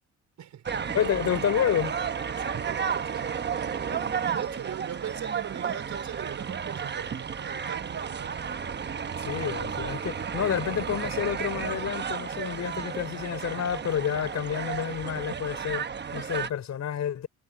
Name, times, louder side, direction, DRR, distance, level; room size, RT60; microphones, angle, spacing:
voice 1, 0.4-0.9 2.4-8.4, right 10 dB, 70° right, 4.6 m, -40 dB
sound 1, 0.7-16.5, right 7 dB, 35° right, 1.0 m, -32 dB
voice 2, 0.9-2.0 3.9-4.1 9.2-17.3, left 9 dB, 60° left, 4.3 m, -29 dB
cardioid pair, 90°, 30 cm